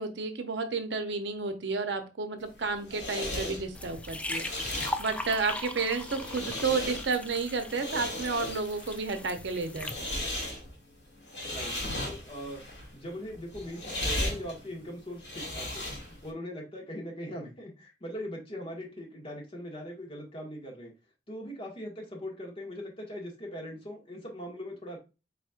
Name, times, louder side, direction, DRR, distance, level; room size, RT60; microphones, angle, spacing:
voice 1, 0.0-10.1, right 4 dB, 70° right, 8 dB, 0.7 m, -32 dB
sound 1, 2.4-16.3, left 1 dB, 65° left, 2.1 m, -37 dB
sound 2, 3.7-10.1, left 2 dB, 5° left, 0.3 m, -39 dB
voice 2, 11.4-12.6 12.9-15.9 16.2-20.9 21.3-25.0, equal, 30° left, -1 dB, 1.5 m, -40 dB
4.2 x 4.2 x 2.4 m, 0.29 s
head